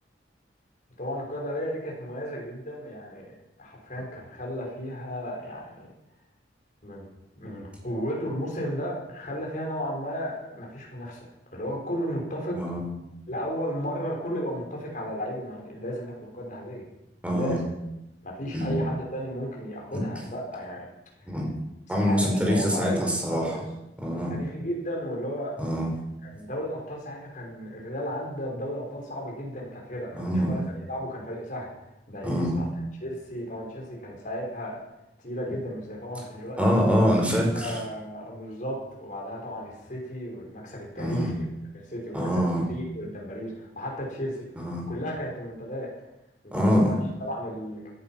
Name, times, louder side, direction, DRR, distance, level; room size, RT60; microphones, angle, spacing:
voice 1, 1.0-5.8 6.8-7.1 7.3-11.2 11.5-12.6 13.3-16.8 17.3-17.7 18.2-20.9 22.0-23.6 24.1-25.6 26.2-31.7 32.1-34.8 35.2-36.8 37.5-41.3 41.9-44.5 44.9-45.9 46.4-47.9, equal, 45° left, -2 dB, 5.8 m, -34 dB
voice 2, 12.5-12.8 17.2-17.6 18.5-18.8 21.3-21.5 21.9-23.4 24.0-24.3 25.6-25.9 30.1-30.6 32.2-32.6 36.6-37.7 41.0-41.3 42.1-42.6 44.6-44.8 46.5-46.9, equal, 10° right, -1 dB, 5.0 m, -24 dB
16.5 x 11.5 x 6.0 m, 0.89 s
head